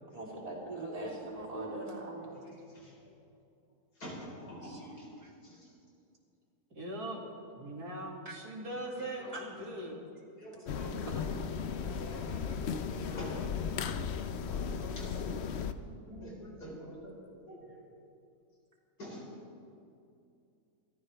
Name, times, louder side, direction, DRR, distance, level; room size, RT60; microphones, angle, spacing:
voice 1, 0.1-2.3 8.3-8.4 9.3-9.4 10.8-11.3, right 2 dB, 20° right, -4 dB, 3.6 m, -40 dB
voice 2, 1.2-1.6 2.3-3.1 4.0-5.1 5.4-5.7 9.2-9.3 10.4-11.1 11.7-12.6 12.9-13.5 14.5-15.2 16.0-17.9 19.0-19.2, equal, 85° left, -4 dB, 4.9 m, -47 dB
voice 3, 4.6-4.9 5.2-5.3 6.7-7.3 7.6-10.0, right 1 dB, 75° right, -1 dB, 2.9 m, -41 dB
sound 1, 10.7-15.7, left 6 dB, 55° left, 0.8 m, -36 dB
28.0 x 13.5 x 3.4 m, 2.5 s
omnidirectional pair, 1.7 m